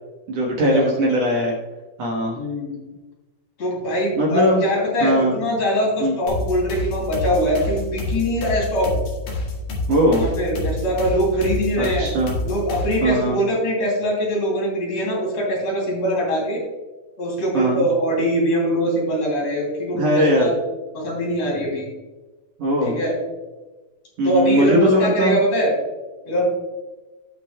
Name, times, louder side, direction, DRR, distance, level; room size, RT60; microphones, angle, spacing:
voice 1, 0.3-1.5 2.0-2.4 4.2-4.6 5.0-5.4 6.0-6.2 9.9-10.3 11.8-12.4 13.0-13.4 17.5-17.9 19.9-20.5 22.6-23.0 24.2-25.4, equal, 60° right, -2 dB, 1.8 m, -19 dB
voice 2, 2.3-2.8 3.6-8.9 10.1-12.1 12.4-16.6 17.2-20.5 20.9-21.9 22.8-23.1 24.2-25.7 26.3-26.4, equal, 45° left, -2 dB, 3.8 m, -22 dB
sound 1, 6.3-13.1, left 2 dB, 65° left, 3.2 m, -28 dB
17.5 x 5.9 x 2.2 m, 1.2 s
omnidirectional pair, 4.3 m